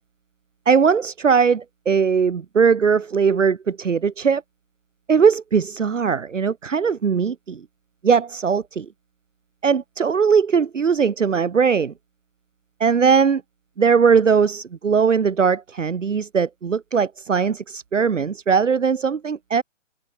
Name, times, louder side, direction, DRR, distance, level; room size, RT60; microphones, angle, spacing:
voice 1, 0.7-4.4 5.1-7.6 8.0-8.9 9.6-11.9 12.8-13.4 13.8-19.6, right 6 dB, 70° right, 1.2 m, -19 dB
open air
figure-of-eight pair, 125°, 38 cm